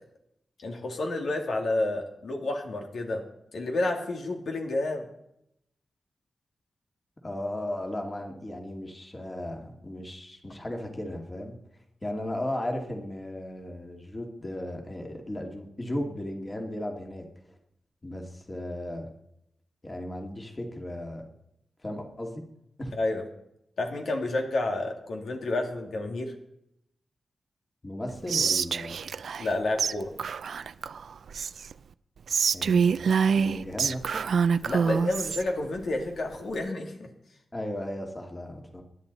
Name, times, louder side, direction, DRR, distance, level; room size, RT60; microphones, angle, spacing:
voice 1, 0.6-3.2 3.5-5.1 22.9-23.2 23.8-26.3 29.4-30.1 34.6-37.1, left 2 dB, 75° left, 2 dB, 2.4 m, -30 dB
voice 2, 7.2-11.6 12.0-17.6 18.0-19.1 19.8-21.2 21.8-22.4 22.8-22.9 27.8-29.0 32.5-34.2 37.5-38.8, left 1 dB, 25° left, 2 dB, 2.6 m, -36 dB
Whispering, 28.3-29.5 29.8-29.9 30.2-31.7 32.3-35.4, right 6 dB, 85° right, 0.5 m, -26 dB
25.5 x 11.0 x 4.2 m, 0.80 s
wide cardioid pair, 110°, 0 cm